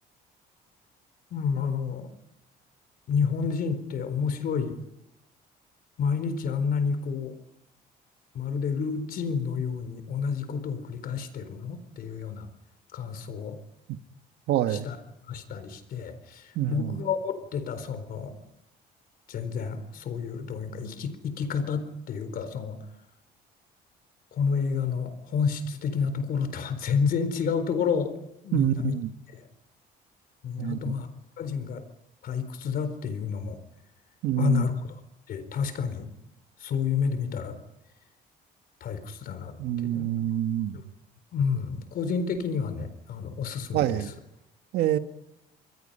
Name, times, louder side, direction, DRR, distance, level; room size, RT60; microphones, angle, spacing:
voice 1, 1.3-2.1 3.1-4.8 6.0-7.3 8.3-12.5 12.9-13.6 14.7-15.0 15.3-18.3 19.3-22.8 24.3-28.2 28.4-29.0 30.4-31.1 31.4-31.8 32.2-33.6 34.4-35.0 35.3-36.1 36.6-37.6 38.8-39.6 39.8-40.1 40.7-40.8 41.3-44.1, left 6 dB, 60° left, 4.2 m, -29 dB
voice 2, 14.5-14.9 16.5-17.0 28.5-29.1 30.6-30.9 34.2-34.6 39.6-40.7 43.7-44.1 44.7-45.0, right 12 dB, 80° right, 1.5 m, -26 dB
28.5 x 22.5 x 5.6 m
cardioid pair, 110°, 17 cm